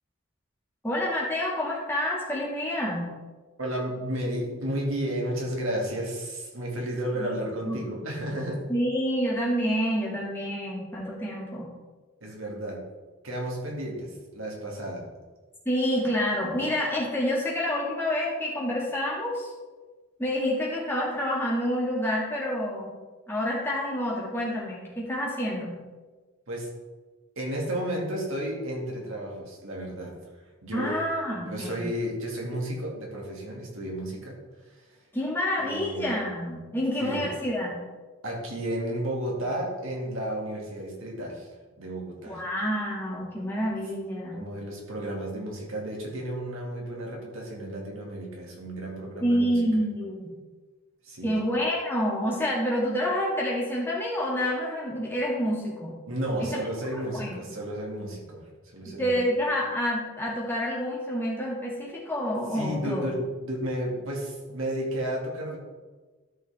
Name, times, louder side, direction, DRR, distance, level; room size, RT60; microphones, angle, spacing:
voice 1, 0.8-3.1 7.2-7.3 7.6-7.8 8.7-11.7 15.7-19.5 20.2-22.9 23.3-25.8 30.7-31.9 35.1-37.8 42.3-44.4 49.2-50.3 51.2-56.0 56.4-56.6 56.9-57.4 58.9-63.1, equal, 10° left, -5 dB, 2.1 m, -28 dB
voice 2, 3.6-8.6 12.2-12.8 13.2-15.1 26.5-26.7 27.4-30.1 30.6-31.0 31.4-34.4 34.7-34.8 35.6-36.3 37.0-37.3 38.2-41.5 41.8-42.4 44.3-49.5 51.0-51.3 56.1-58.4 58.7-59.2 62.5-65.6, right 1 dB, 70° right, -2 dB, 2.3 m, -32 dB
12.5 x 5.7 x 3.5 m, 1.3 s
head